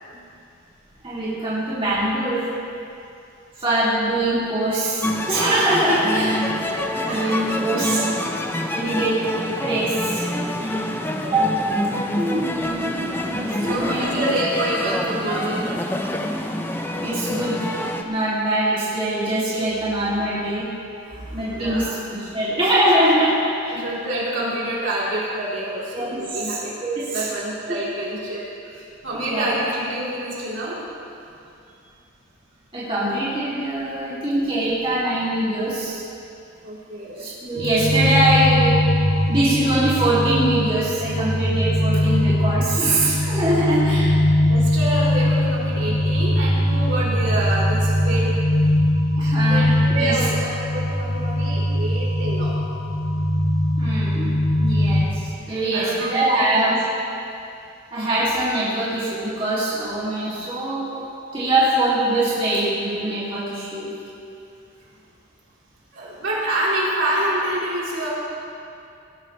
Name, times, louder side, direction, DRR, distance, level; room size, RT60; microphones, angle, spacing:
voice 1, 1.0-2.5 3.6-6.4 7.0-8.0 8.7-9.2 9.6-10.3 11.2-11.5 12.1-14.2 17.0-17.7 18.0-20.7 21.3-23.8 25.9-26.2 26.8-27.3 29.2-29.5 32.7-36.0 37.2-38.8 39.3-44.2 49.2-50.2 53.8-54.3 54.6-56.8 57.9-61.0 61.3-63.9, right 1 dB, 25° right, -10 dB, 2.6 m, -23 dB
sound 1, 5.0-18.0, left 1 dB, 10° left, 0.6 m, -26 dB
voice 2, 7.1-8.0 10.6-10.8 11.2-11.3 13.6-15.7 21.1-21.9 23.7-26.7 27.1-30.8 36.6-37.3 44.5-49.0 49.3-52.5 55.5-56.8 65.9-68.1, right 1 dB, 65° right, -8 dB, 3.8 m, -27 dB
sound 2, 37.6-55.0, left 1 dB, 85° left, 1.9 m, -21 dB
19.5 x 11.5 x 3.3 m, 2.5 s
head